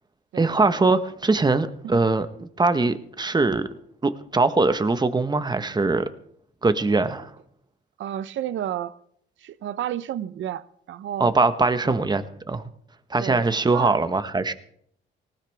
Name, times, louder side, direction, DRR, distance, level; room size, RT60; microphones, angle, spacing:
voice 1, 0.3-3.7 4.0-6.1 6.6-7.3 11.2-12.7 13.1-14.5, right 3 dB, 20° right, 1.3 m, -22 dB
voice 2, 8.0-8.9 9.4-11.3 11.8-12.0 13.2-13.9, right 11 dB, 75° right, 0.9 m, -31 dB
19.5 x 19.0 x 3.6 m
cardioid pair, 90°, 20 cm